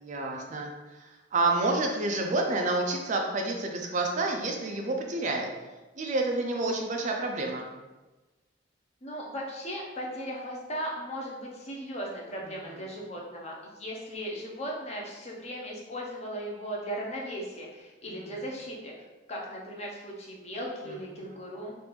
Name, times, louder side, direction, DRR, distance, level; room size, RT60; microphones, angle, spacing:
voice 1, 0.0-5.5 6.0-7.7 12.7-12.8 18.2-18.4 20.9-21.4, right 2 dB, 40° right, 2 dB, 0.3 m, -29 dB
voice 2, 9.0-18.9 19.3-21.8, equal, 35° left, -2 dB, 0.6 m, -37 dB
3.3 x 2.5 x 3.0 m, 1.1 s
head